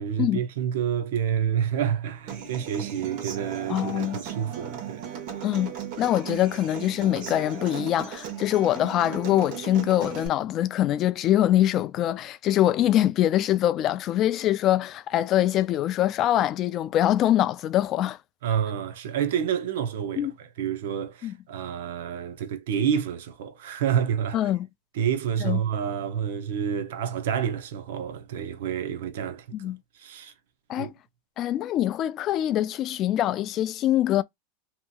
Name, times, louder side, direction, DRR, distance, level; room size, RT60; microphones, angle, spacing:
voice 1, 0.0-5.1 18.4-24.5 24.9-30.3 30.8-30.9, right 8 dB, 75° right, 0.5 m, -29 dB
Human voice / Acoustic guitar, 2.3-10.3, right 8 dB, 60° right, 1.1 m, -37 dB
voice 2, 3.7-4.2 5.4-5.7 6.0-18.2 20.2-20.3 21.2-21.3 24.3-24.7 25.4-25.6 29.5-29.8 30.7-30.9 31.4-34.2, left 12 dB, 40° left, 0.3 m, -24 dB
2.9 x 2.6 x 2.2 m
supercardioid pair, 130°, 0 cm